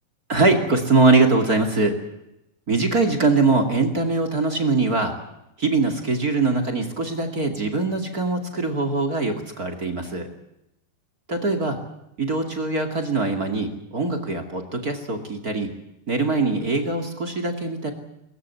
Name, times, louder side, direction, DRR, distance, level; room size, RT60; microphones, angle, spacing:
voice 1, 0.3-2.0 2.7-5.1 5.6-10.3 11.3-11.8 12.2-15.7 16.1-17.9, right 3 dB, 30° right, 4 dB, 2.0 m, -22 dB
22.5 x 21.0 x 8.5 m, 0.87 s
omnidirectional pair, 4.9 m